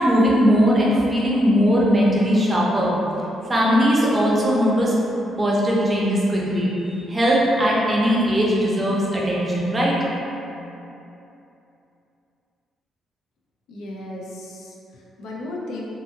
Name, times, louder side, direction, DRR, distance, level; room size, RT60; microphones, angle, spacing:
voice 1, 0.0-2.9 3.5-4.9 5.4-10.0, equal, 25° right, -5 dB, 0.6 m, -19 dB
voice 2, 13.7-15.8, left 2 dB, 80° left, -3 dB, 0.4 m, -35 dB
2.6 x 2.5 x 2.6 m, 2.8 s
cardioid pair, 90°, 0 cm